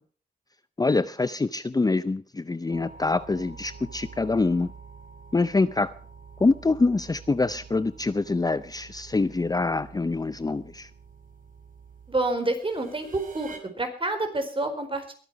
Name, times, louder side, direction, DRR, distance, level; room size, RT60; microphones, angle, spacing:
voice 1, 0.8-4.7 5.3-5.9 6.4-10.9, left 3 dB, 20° left, 15 dB, 0.6 m, -25 dB
sound 1, 2.7-13.6, right 5 dB, 50° right, 3.9 m, -47 dB
voice 2, 12.1-15.1, right 2 dB, 30° right, 7 dB, 4.5 m, -28 dB
22.0 x 9.1 x 4.8 m, 0.43 s
cardioid pair, 60°, 17 cm